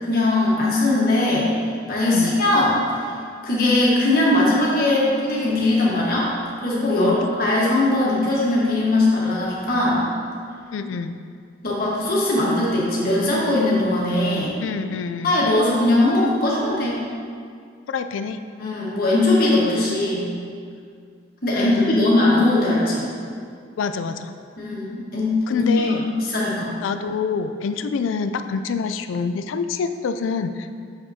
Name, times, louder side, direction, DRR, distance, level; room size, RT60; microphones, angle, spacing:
voice 1, 0.0-1.5 1.9-3.0 3.4-6.3 6.6-10.0 11.6-14.5 15.2-17.0 18.6-20.3 21.4-23.1 24.6-26.7, left 2 dB, 50° left, -5 dB, 1.3 m, -20 dB
voice 2, 10.7-11.2 14.6-15.4 17.9-18.4 21.5-22.1 23.8-24.3 25.5-26.1 26.8-30.7, left 5 dB, 90° left, 9 dB, 0.3 m, -26 dB
6.5 x 5.8 x 2.7 m, 2.2 s
head